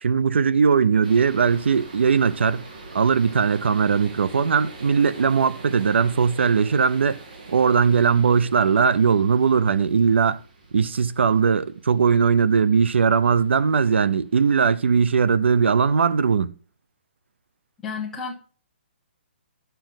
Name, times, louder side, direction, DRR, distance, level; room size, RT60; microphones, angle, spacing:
voice 1, 0.0-2.7 2.9-7.2 7.5-10.4 10.7-16.5, right 6 dB, 75° right, 0.6 m, -19 dB
sound 1, 1.0-14.9, right 3 dB, 40° right, 1.6 m, -44 dB
voice 2, 17.8-18.3, left 5 dB, 5° left, 1.1 m, -31 dB
9.1 x 6.8 x 3.9 m
hypercardioid pair, 180°, 6 cm